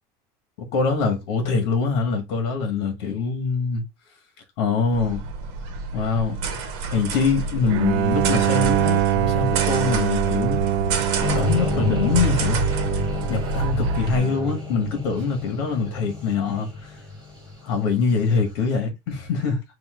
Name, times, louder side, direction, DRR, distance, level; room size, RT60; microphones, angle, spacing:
voice 1, 0.7-3.8 4.6-5.2 5.9-6.4 6.9-10.6 11.3-12.6 13.3-16.9 17.6-19.6, left 5 dB, 65° left, 1.5 m, -24 dB
sound 1, 4.9-14.2, right 4 dB, 55° right, 1.1 m, -28 dB
Bowed string instrument, 7.7-14.7, right 12 dB, 80° right, 0.5 m, -25 dB
sound 2, 11.2-18.3, left 3 dB, 5° left, 1.9 m, -30 dB
6.3 x 2.8 x 2.4 m
cardioid pair, 175°, 13 cm